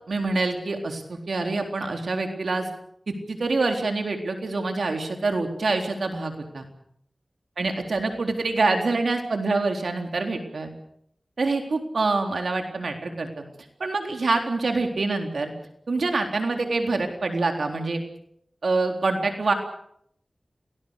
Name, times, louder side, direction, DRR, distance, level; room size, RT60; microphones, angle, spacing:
voice 1, 0.1-2.7 3.1-6.7 7.6-10.7 11.4-13.4 13.8-15.5 15.9-18.0 18.6-19.5, right 3 dB, 80° right, 4 dB, 3.9 m, -26 dB
28.0 x 19.0 x 6.7 m, 0.70 s
wide cardioid pair, 50°, 0 cm